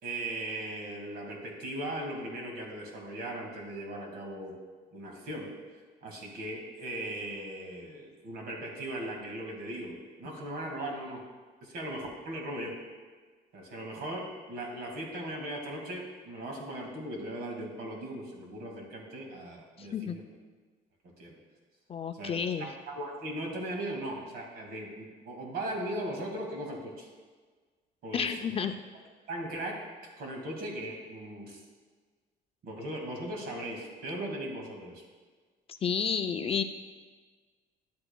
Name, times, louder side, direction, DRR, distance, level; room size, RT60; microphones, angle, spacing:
voice 1, 0.0-4.6 4.9-5.5 6.0-11.2 11.6-12.8 13.5-20.2 21.2-21.4 22.1-27.1 28.0-28.5 29.3-31.6 32.6-35.0, right 1 dB, 65° right, 0 dB, 2.1 m, -38 dB
voice 2, 19.8-20.2 21.9-22.7 28.1-28.7 35.7-36.6, left 7 dB, 35° left, 9 dB, 0.4 m, -31 dB
11.0 x 7.9 x 2.3 m, 1.5 s
cardioid pair, 110°, 17 cm